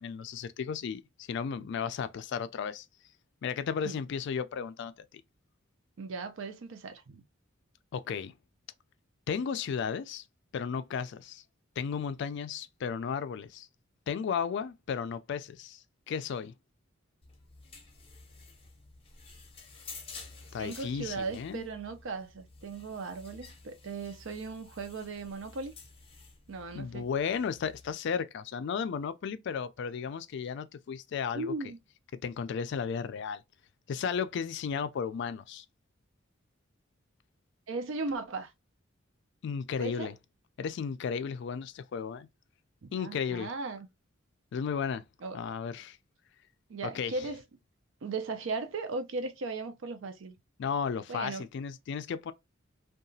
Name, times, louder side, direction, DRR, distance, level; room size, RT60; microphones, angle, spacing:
voice 1, 0.0-2.9 3.4-5.2 7.9-8.3 9.3-10.2 10.5-11.4 11.8-13.7 14.1-16.5 20.5-21.6 26.7-31.5 32.2-33.4 33.9-35.6 39.4-40.1 40.6-42.3 42.9-43.5 44.5-45.0 45.3-46.0 46.8-47.1 50.6-52.3, left 6 dB, 60° left, 0.3 m, -34 dB
voice 2, 6.0-7.2 20.6-25.7 26.5-27.0 31.3-31.8 37.7-38.5 39.8-40.1 42.8-43.9 45.2-45.4 46.7-47.4 48.0-50.4 51.1-51.5, right 3 dB, 75° right, 0.5 m, -37 dB
sound 1, 17.2-27.9, left 4 dB, 30° left, 0.6 m, -51 dB
2.8 x 2.3 x 2.6 m
head